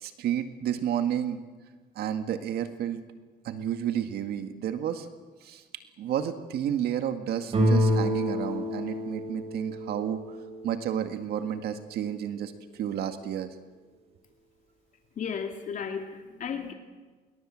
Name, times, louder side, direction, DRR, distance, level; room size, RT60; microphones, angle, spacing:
voice 1, 0.0-1.4 2.0-3.0 3.4-5.1 5.4-5.6 6.0-10.2 10.6-13.5, right 9 dB, 70° right, 8 dB, 2.0 m, -31 dB
sound 1, 7.5-11.1, left 1 dB, 35° right, 7.6 m, -28 dB
voice 2, 15.2-16.7, left 6 dB, 50° left, 4 dB, 2.7 m, -34 dB
27.0 x 23.0 x 7.8 m, 1.3 s
cardioid pair, 110°, 17 cm